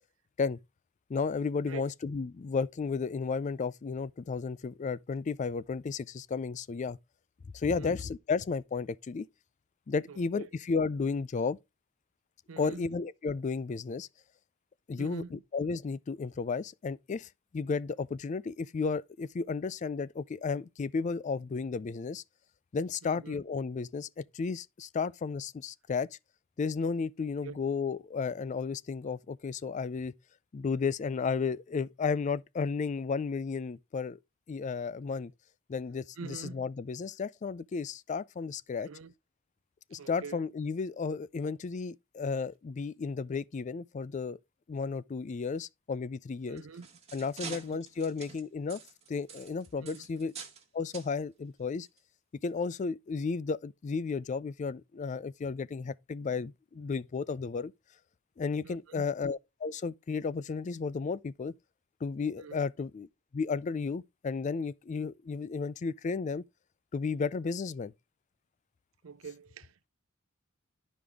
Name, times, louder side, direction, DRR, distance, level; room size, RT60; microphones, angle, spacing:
voice 1, 1.1-7.0 7.5-9.3 9.9-11.6 12.6-14.1 14.9-22.2 22.7-26.1 26.6-30.1 30.5-34.2 34.5-35.3 35.7-38.9 39.9-44.4 44.7-46.6 47.1-48.8 49.1-50.3 50.7-51.9 52.4-57.7 58.4-61.5 62.0-63.1 63.3-66.4 66.9-67.9, left 5 dB, 35° left, 0.3 m, -33 dB
voice 2, 10.1-10.5 12.5-12.9 15.0-15.4 23.0-23.4 27.4-27.7 36.2-36.7 38.8-39.1 40.0-40.4 46.5-46.9 47.4-47.8 49.8-50.1 58.6-59.0 62.4-62.6 69.0-69.9, right 5 dB, 75° right, 0.6 m, -46 dB
sound 1, 46.4-50.6 50.9-51.1 51.9-52.0 52.5-52.6, right 6 dB, 30° right, 1.4 m, -46 dB
11.0 x 5.1 x 3.5 m
head